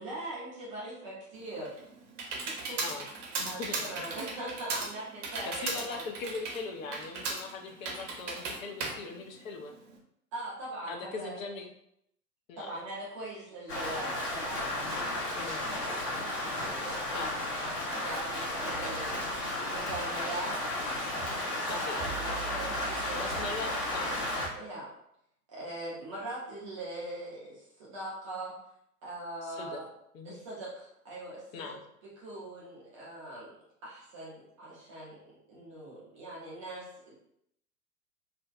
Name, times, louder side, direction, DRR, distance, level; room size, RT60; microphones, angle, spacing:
voice 1, 0.0-1.7 2.5-2.8 3.4-6.0 10.3-11.4 12.6-17.3 18.0-19.3 19.6-20.8 21.7-23.2 24.5-24.9 25.5-28.5 29.0-29.9 30.2-31.8 32.2-33.5 33.8-37.1, right 1 dB, 25° right, -6 dB, 0.3 m, -41 dB
Computer keyboard, 1.4-9.9, right 3 dB, 50° right, 0.7 m, -37 dB
voice 2, 3.4-4.4 5.5-9.7 10.9-11.7 12.5-12.7 15.3-15.6 17.1-17.3 21.6-22.0 23.1-24.2 29.4-29.8 30.1-30.4 31.5-31.8, left 4 dB, 60° left, 3 dB, 0.5 m, -40 dB
Rain, 13.7-24.5, left 1 dB, 75° left, 1.0 m, -33 dB
sound 1, 18.7-20.4 21.1-21.7 22.0-24.6, right 9 dB, 5° left, 0.7 m, -46 dB
2.5 x 2.1 x 2.4 m, 0.75 s
figure-of-eight pair, 100°, 47 cm